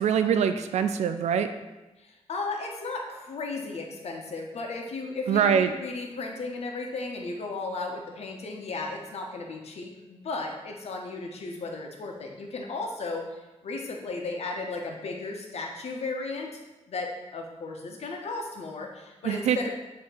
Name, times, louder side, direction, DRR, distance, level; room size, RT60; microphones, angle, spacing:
voice 1, 0.0-1.5 5.3-5.7 19.2-19.7, right 8 dB, 70° right, 9 dB, 0.4 m, -24 dB
voice 2, 2.0-16.6 16.9-19.7, left 3 dB, 65° left, 1 dB, 1.1 m, -35 dB
7.3 x 3.1 x 4.4 m, 1.1 s
cardioid pair, 90°, 12 cm